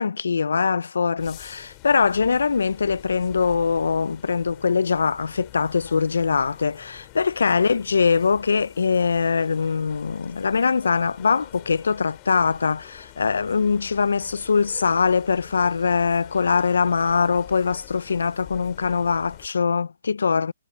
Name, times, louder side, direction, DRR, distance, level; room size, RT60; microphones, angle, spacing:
voice 1, 0.0-20.5, left 5 dB, 85° left, 0.5 m, -22 dB
sound 1, 1.2-19.5, left 31 dB, 30° left, 2.2 m, -47 dB
hypercardioid pair, 145°, 0 cm